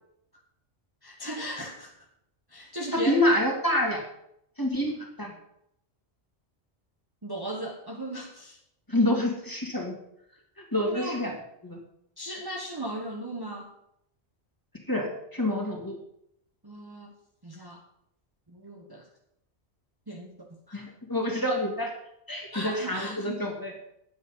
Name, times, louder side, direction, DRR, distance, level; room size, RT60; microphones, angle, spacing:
voice 1, 1.0-2.1 2.5-3.3 7.2-8.6 10.8-11.2 12.2-13.7 16.6-17.1 17.4-17.8 18.5-19.1 20.1-20.8 22.5-23.4, right 1 dB, 20° right, 0 dB, 1.0 m, -37 dB
voice 2, 2.9-4.0 4.6-5.3 8.9-10.0 10.6-11.4 11.6-11.8 14.9-16.0 20.7-21.9 22.3-23.7, left 1 dB, 20° left, 0 dB, 2.1 m, -27 dB
10.0 x 7.8 x 5.4 m, 0.77 s
omnidirectional pair, 1.1 m